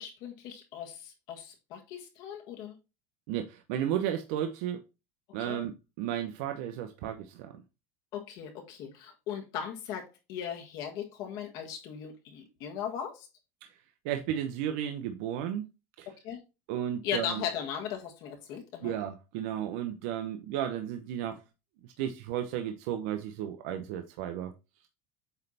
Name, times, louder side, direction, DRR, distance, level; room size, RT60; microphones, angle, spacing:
voice 1, 0.0-2.7 5.4-5.6 8.1-13.3 16.2-16.4 17.0-18.9, left 8 dB, 60° left, 1.6 m, -38 dB
voice 2, 3.3-4.8 5.3-7.5 13.6-13.7 14.0-15.7 16.0-16.1 16.7-17.4 18.8-21.4 22.0-24.5, right 10 dB, 75° right, 0.8 m, -33 dB
8.1 x 3.4 x 4.2 m
supercardioid pair, 130°, 8 cm